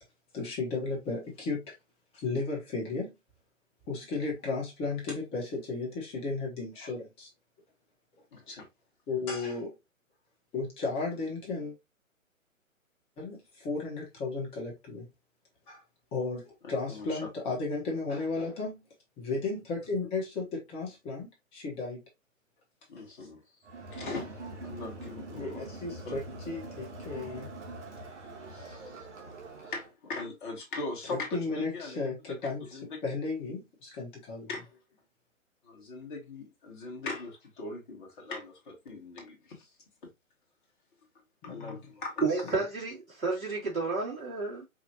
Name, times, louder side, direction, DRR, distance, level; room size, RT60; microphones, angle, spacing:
voice 1, 0.3-1.7 2.1-3.1 3.9-7.3 9.1-9.7 10.5-11.7 13.2-15.1 15.7-15.8 16.1-18.8 19.2-22.0 25.3-27.5 31.1-34.5 41.4-41.8 42.5-42.6, left 3 dB, 15° left, 1.2 m, -34 dB
voice 2, 8.3-8.7 16.9-17.3 22.9-23.4 23.9-25.7 26.0-26.2 28.5-29.1 29.6-32.0 32.7-33.0 34.5-34.7 35.6-39.7 41.4-42.2, left 3 dB, 35° left, 1.5 m, -40 dB
Crowd, 23.6-29.9, right 2 dB, 60° right, 1.3 m, -43 dB
voice 3, 42.2-43.0 43.2-44.6, right 4 dB, 80° right, 2.7 m, -30 dB
4.9 x 2.5 x 2.8 m
figure-of-eight pair, 130°, 41 cm